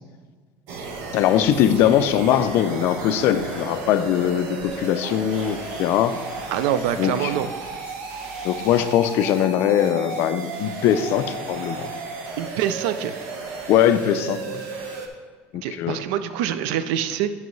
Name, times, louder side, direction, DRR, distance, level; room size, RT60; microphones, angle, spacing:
sound 1, 0.7-15.1, right 4 dB, 60° right, 0.8 m, -34 dB
voice 1, 1.1-6.1 7.0-7.3 8.4-11.9 13.7-14.6 15.5-16.0, left 10 dB, 45° left, 11 dB, 0.4 m, -21 dB
sound 2, 3.3-3.8 4.6-4.9 5.2-8.8, equal, 20° right, 1.7 m, -45 dB
voice 2, 6.5-7.5 12.4-13.1 15.6-17.3, right 10 dB, 85° right, 12 dB, 0.3 m, -25 dB
9.3 x 5.4 x 3.1 m, 1.5 s
cardioid pair, 180°, 5 cm